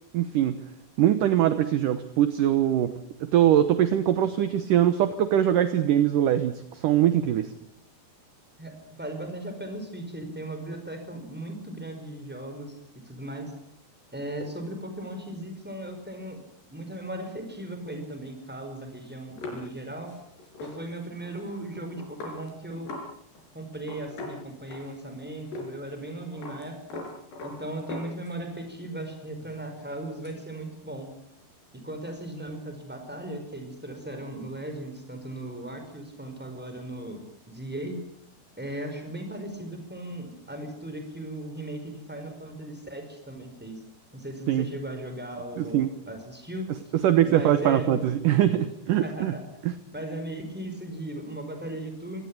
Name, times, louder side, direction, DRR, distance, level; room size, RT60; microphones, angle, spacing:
voice 1, 0.1-0.6 1.0-2.9 3.2-7.5 44.5-44.7 45.6-45.9 47.0-49.3 49.6-49.7, right 11 dB, 70° right, 11 dB, 2.2 m, -22 dB
voice 2, 8.6-12.8 13.0-13.5 14.1-16.4 16.7-20.2 20.6-23.0 23.5-27.1 27.4-31.1 31.8-38.0 38.6-43.8 44.1-46.7 47.3-48.1 49.0-49.5 49.9-52.2, right 1 dB, ahead, 6 dB, 4.5 m, -37 dB
sound 1, 19.4-23.1 23.4-23.5 23.8-25.1 25.5-25.7 26.0-28.6 29.0-30.4, left 2 dB, 85° left, 7.0 m, -41 dB
24.5 x 17.5 x 8.7 m, 0.73 s
omnidirectional pair, 4.7 m